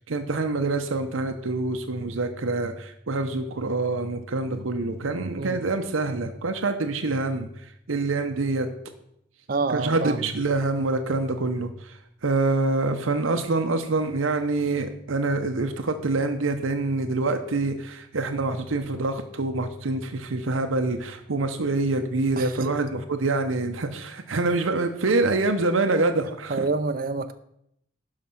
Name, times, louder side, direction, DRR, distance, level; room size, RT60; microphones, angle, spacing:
voice 1, 0.0-8.7 9.7-26.7, right 3 dB, 85° right, 7 dB, 0.8 m, -26 dB
voice 2, 9.5-10.3 22.4-22.7 26.5-27.3, right 3 dB, 45° right, 9 dB, 0.5 m, -27 dB
11.5 x 4.9 x 5.7 m, 0.75 s
head